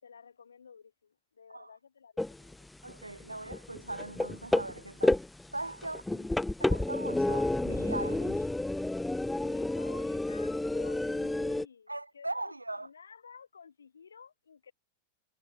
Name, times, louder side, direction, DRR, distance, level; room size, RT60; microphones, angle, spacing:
voice 1, 0.0-2.7 5.8-6.3 9.4-14.7, left 6 dB, 70° left, 7.2 m, -53 dB
sound 1, 2.2-11.6, left 2 dB, 5° left, 0.4 m, -30 dB
voice 2, 2.8-5.2 5.5-6.0 6.6-8.5 11.9-12.9, right 2 dB, 85° right, 0.6 m, -39 dB
figure-of-eight pair, 90°, 0 cm